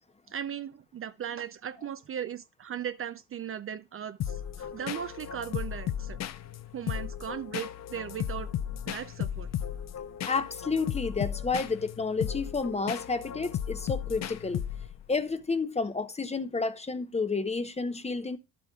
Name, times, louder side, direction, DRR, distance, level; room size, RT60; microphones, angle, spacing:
voice 1, 0.3-6.2 6.7-8.5 8.9-9.5, right 9 dB, 35° right, 0.5 m, -37 dB
sound 1, 4.2-15.1, left 10 dB, 45° left, 0.7 m, -35 dB
voice 2, 10.3-14.6 15.1-18.4, left 4 dB, 15° left, 0.8 m, -30 dB
11.0 x 8.5 x 2.3 m
cardioid pair, 110°, 38 cm